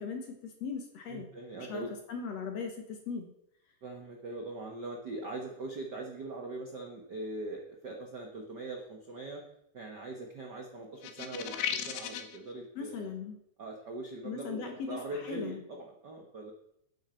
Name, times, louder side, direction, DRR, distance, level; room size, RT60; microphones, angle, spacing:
voice 1, 0.0-1.3 1.7-3.3 12.8-13.4 14.2-15.6, left 5 dB, 60° left, 4 dB, 2.0 m, -39 dB
voice 2, 1.1-1.9 3.8-9.4 9.7-13.1 13.6-16.5, right 2 dB, 75° right, 1 dB, 0.9 m, -41 dB
sound 1, 11.0-12.4, left 9 dB, 80° left, 2.5 m, -35 dB
10.5 x 9.2 x 4.4 m, 0.77 s
omnidirectional pair, 4.0 m